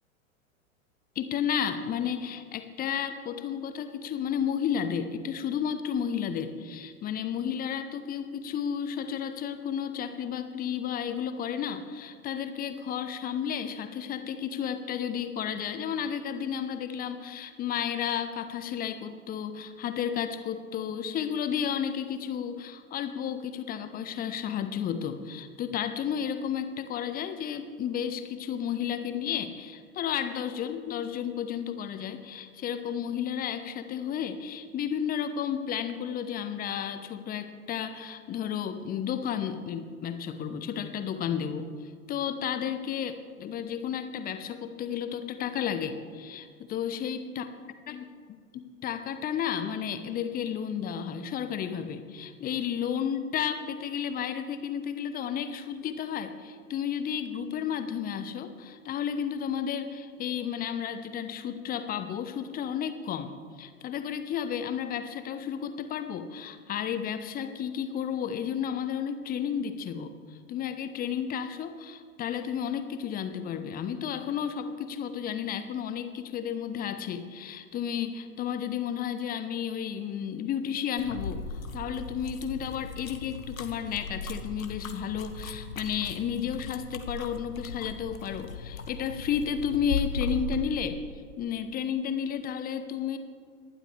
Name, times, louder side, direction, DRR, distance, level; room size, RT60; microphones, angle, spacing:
voice 1, 1.2-41.7 42.1-47.5 47.9-48.0 48.8-63.3 63.6-70.1 70.5-81.4 81.7-91.0 91.4-93.2, left 8 dB, 20° left, 10 dB, 0.9 m, -32 dB
sound 1, 81.0-90.6, left 4 dB, 75° left, 1.3 m, -37 dB
25.5 x 11.5 x 3.3 m, 2.1 s
figure-of-eight pair, 95°, 42 cm